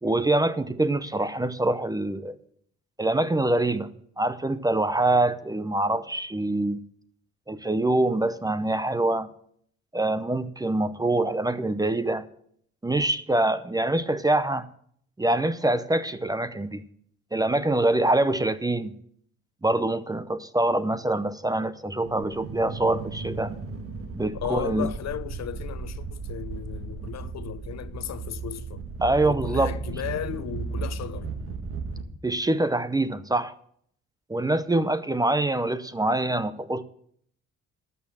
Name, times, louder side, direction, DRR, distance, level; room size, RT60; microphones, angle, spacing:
voice 1, 0.0-2.3 3.0-3.9 4.2-6.8 7.5-9.3 9.9-12.3 12.8-14.7 15.2-16.8 17.3-18.9 19.6-23.5 24.1-24.9 29.0-29.7 32.2-33.5 34.3-36.8, right 2 dB, 10° right, 0.6 m, -25 dB
sound 1, 22.0-32.0, right 4 dB, 50° right, 1.7 m, -35 dB
voice 2, 24.3-28.8 29.2-31.3, left 10 dB, 60° left, 0.8 m, -35 dB
12.5 x 6.5 x 7.2 m
cardioid pair, 90°, 30 cm